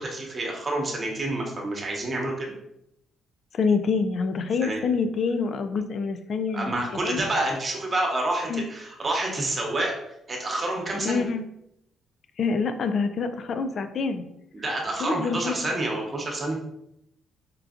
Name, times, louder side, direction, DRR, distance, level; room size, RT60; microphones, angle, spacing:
voice 1, 0.0-2.5 4.6-4.8 6.5-9.9 10.3-11.2 14.5-16.6, right 2 dB, 35° right, 0 dB, 1.0 m, -28 dB
voice 2, 3.5-6.7 7.0-7.2 8.5-8.7 11.0-11.4 12.4-14.2 15.0-15.6, left 5 dB, 60° left, 8 dB, 0.3 m, -26 dB
4.4 x 2.4 x 2.4 m, 0.79 s
cardioid pair, 90°, 0 cm